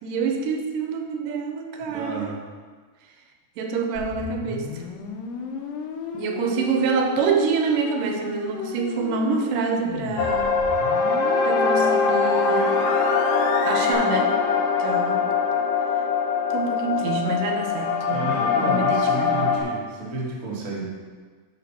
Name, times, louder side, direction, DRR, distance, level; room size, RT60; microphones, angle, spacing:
voice 1, 0.0-2.3 3.6-4.8 6.1-10.5 11.4-12.8 13.6-14.4 14.8-15.3 16.5-18.3 18.6-19.5, right 4 dB, 85° right, 3 dB, 2.3 m, -26 dB
voice 2, 1.8-2.4 18.1-20.9, right 1 dB, 40° right, -5 dB, 1.1 m, -32 dB
sound 1, 3.9-13.9, left 5 dB, 90° left, 2.4 m, -35 dB
sound 2, 10.2-19.6, left 5 dB, 65° left, 1.6 m, -22 dB
6.8 x 5.1 x 5.6 m, 1.5 s
omnidirectional pair, 3.9 m